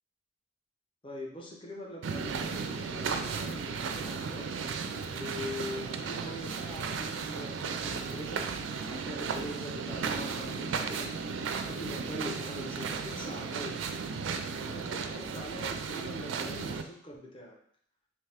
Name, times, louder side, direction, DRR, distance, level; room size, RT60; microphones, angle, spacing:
voice 1, 1.0-4.5 5.1-11.2 11.7-14.0 14.6-17.6, left 1 dB, 25° left, 0 dB, 0.7 m, -43 dB
sound 1, 2.0-16.8, right 5 dB, 75° right, 0.4 m, -35 dB
3.5 x 2.9 x 3.3 m, 0.62 s
head